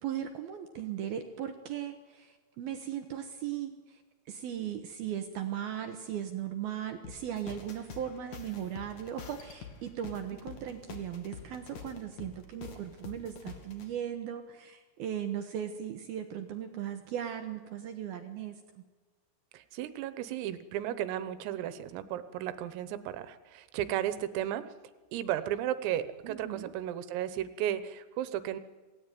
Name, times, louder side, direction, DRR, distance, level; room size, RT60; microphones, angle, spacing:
voice 1, 0.0-18.8 26.2-26.7, right 10 dB, 70° right, 7 dB, 2.5 m, -38 dB
sound 1, 7.0-13.9, left 6 dB, 45° left, 3.0 m, -47 dB
voice 2, 19.5-24.7 25.1-28.6, right 11 dB, 85° right, 13 dB, 3.9 m, -34 dB
27.5 x 18.5 x 9.3 m, 1.3 s
omnidirectional pair, 5.9 m